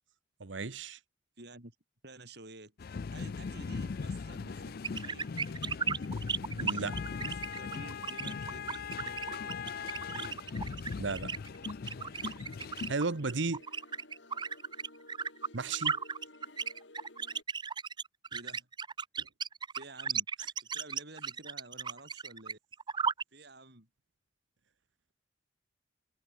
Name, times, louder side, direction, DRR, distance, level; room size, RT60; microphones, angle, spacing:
voice 1, 0.4-1.0 6.5-7.0 11.0-11.3 12.9-13.6 15.5-16.0 19.2-19.3, right 4 dB, 80° right, 1.0 m, -34 dB
voice 2, 1.4-1.8 2.0-5.3 7.1-10.4 13.1-13.3 18.3-18.7 19.7-20.3 20.6-22.6 23.3-23.9, right 2 dB, 60° right, 7.1 m, -51 dB
sound 1, 2.8-12.9, left 5 dB, 55° left, 0.4 m, -39 dB
sound 2, 4.3-17.4, left 1 dB, 75° left, 5.5 m, -55 dB
sound 3, 4.8-23.2, right 6 dB, 25° right, 0.7 m, -35 dB
head